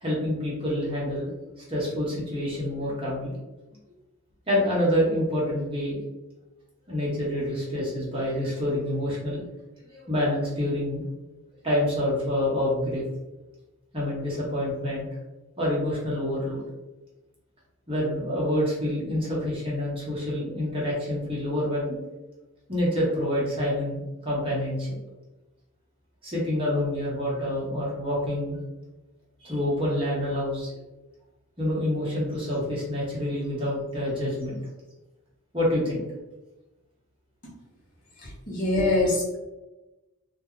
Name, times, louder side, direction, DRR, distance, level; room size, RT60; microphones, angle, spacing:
voice 1, 0.0-3.3 4.5-6.0 6.9-9.4 9.9-11.0 11.6-13.0 13.9-15.1 15.6-16.6 17.9-22.0 22.7-25.0 26.2-28.6 29.4-30.7 31.6-34.6 35.5-36.0, left 1 dB, 25° right, -6 dB, 0.9 m, -27 dB
voice 2, 38.2-39.4, left 2 dB, 40° left, -5 dB, 0.8 m, -24 dB
2.3 x 2.1 x 3.6 m, 1.0 s
head